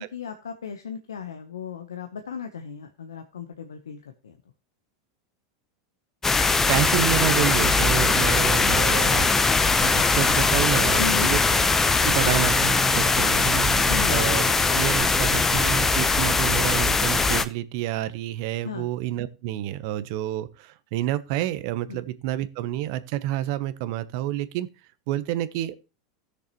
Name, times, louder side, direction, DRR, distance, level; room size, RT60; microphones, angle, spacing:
voice 1, 0.0-4.4 11.0-11.3 13.9-14.2 18.6-18.9 21.9-22.0, left 7 dB, 90° left, 1.0 m, -36 dB
sound 1, 6.2-17.5, left 4 dB, 15° left, 0.8 m, -21 dB
voice 2, 6.7-9.3 9.8-11.6 12.0-14.4 14.7-24.7 25.1-25.8, right 13 dB, 60° right, 0.9 m, -29 dB
sound 2, 11.6-16.5, right 4 dB, 20° right, 2.5 m, -38 dB
16.5 x 6.6 x 3.1 m
hypercardioid pair, 95°, 2 cm